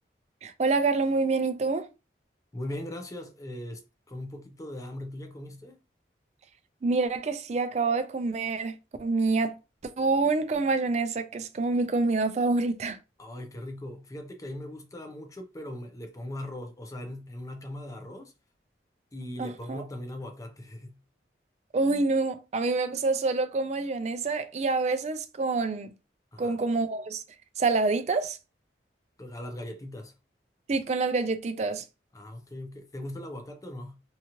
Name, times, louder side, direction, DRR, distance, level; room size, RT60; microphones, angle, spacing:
voice 1, 0.4-1.9 6.8-9.6 9.8-13.0 19.4-19.8 21.7-25.9 26.4-27.2 27.6-28.4 30.7-31.8, right 3 dB, 40° right, 0.4 m, -27 dB
voice 2, 2.5-5.8 13.2-18.3 19.1-21.0 26.3-26.6 29.2-30.1 32.1-34.0, left 1 dB, 20° left, 0.5 m, -39 dB
2.8 x 2.4 x 2.9 m
head